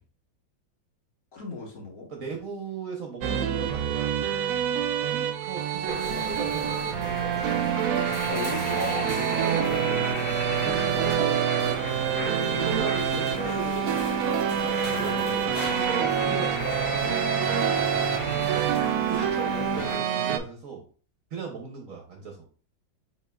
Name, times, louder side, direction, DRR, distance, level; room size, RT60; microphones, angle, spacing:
voice 1, 1.3-2.1 8.3-10.1 10.9-11.2 18.2-18.8, left 3 dB, 55° left, -2 dB, 1.7 m, -37 dB
voice 2, 2.1-4.2 5.1-7.2 9.0-10.1 10.5-11.5 12.6-14.0 14.4-15.5 15.8-17.6 19.1-20.9 21.3-22.5, right 5 dB, 60° right, 2 dB, 1.0 m, -39 dB
sound 1, 3.2-20.4, right 9 dB, 80° right, 0.7 m, -27 dB
sound 2, 5.9-20.0, left 1 dB, 25° left, 1.1 m, -34 dB
5.3 x 4.2 x 2.3 m, 0.39 s
omnidirectional pair, 2.0 m